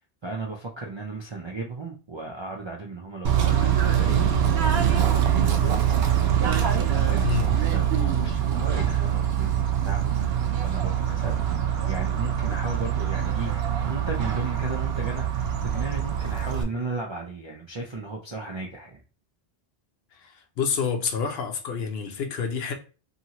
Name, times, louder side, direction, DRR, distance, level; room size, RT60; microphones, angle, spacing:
voice 1, 0.2-5.8 6.2-19.0, right 3 dB, 50° right, 0.3 m, -35 dB
Bird / Train, 3.2-16.6, right 9 dB, 80° right, 0.8 m, -24 dB
voice 2, 7.2-7.5 10.8-10.9 20.1-22.7, left 6 dB, 75° left, 0.9 m, -29 dB
2.8 x 2.6 x 2.8 m
omnidirectional pair, 1.1 m